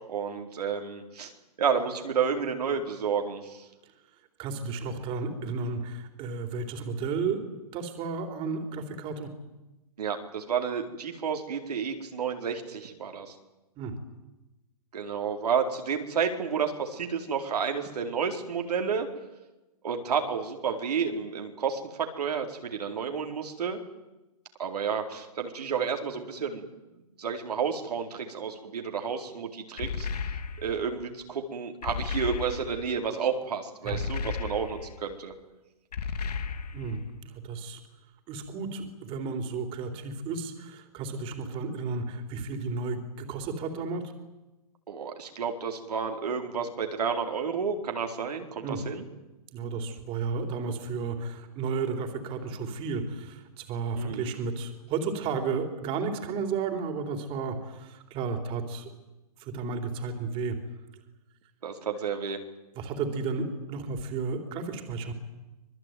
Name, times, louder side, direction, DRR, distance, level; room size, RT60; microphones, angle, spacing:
voice 1, 0.0-1.3 1.6-3.6 10.0-13.3 14.9-19.1 19.8-23.8 24.6-26.6 27.2-30.3 30.6-35.3 44.9-49.0 54.0-54.3 61.6-62.4, right 6 dB, 80° right, 4 dB, 4.3 m, -31 dB
voice 2, 4.4-9.3 13.8-13.9 33.8-34.0 36.7-37.8 38.3-44.1 48.6-48.8 49.5-58.9 59.4-60.6 62.8-65.1, right 4 dB, 25° right, 6 dB, 3.7 m, -33 dB
sound 1, 29.8-30.9 31.8-32.9 33.9-35.0 35.9-37.0, left 5 dB, 85° left, 2.9 m, -34 dB
26.0 x 21.0 x 9.4 m, 1.0 s
hypercardioid pair, 150°, 20 cm